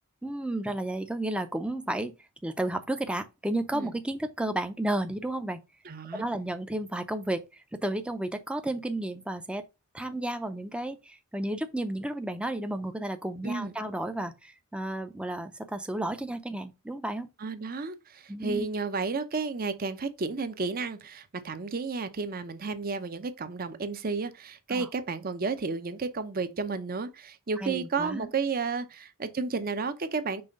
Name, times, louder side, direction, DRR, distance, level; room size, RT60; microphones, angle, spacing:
voice 1, 0.2-2.1 2.4-5.6 6.1-9.6 9.9-17.3 18.3-18.7 24.7-24.9 27.6-28.3, right 1 dB, 5° right, 0.5 m, -32 dB
voice 2, 5.8-6.3 13.4-13.7 17.4-30.4, right 4 dB, 40° right, 0.7 m, -32 dB
5.5 x 3.3 x 5.2 m
head